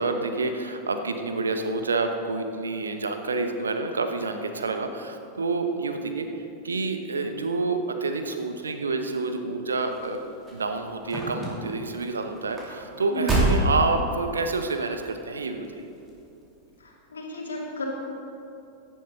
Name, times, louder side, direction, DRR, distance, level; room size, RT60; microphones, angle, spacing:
voice 1, 0.0-6.3 6.6-10.2 10.5-15.8, right 3 dB, 75° right, 6 dB, 1.0 m, -28 dB
sound 1, 9.8-14.6 15.3-15.7 16.0-16.1, right 1 dB, 20° right, 3.0 m, -28 dB
voice 2, 16.8-17.8, equal, 70° left, -1 dB, 2.4 m, -33 dB
16.5 x 10.5 x 4.0 m, 2.8 s
figure-of-eight pair, 90°, 0 cm